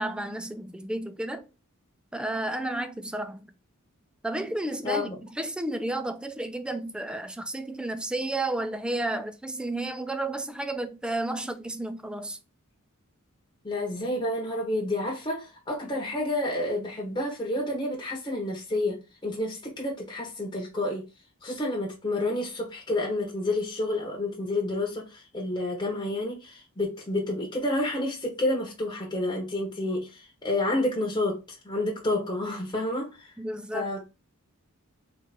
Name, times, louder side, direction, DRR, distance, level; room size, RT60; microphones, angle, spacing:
voice 1, 0.0-1.5 2.1-3.4 4.2-12.4 33.4-33.9, right 2 dB, 5° right, 0.3 m, -32 dB
voice 2, 4.8-5.1 13.6-21.0 21.4-31.4 31.6-33.1 33.7-34.0, left 1 dB, 20° left, 1.2 m, -29 dB
3.6 x 3.2 x 4.1 m
head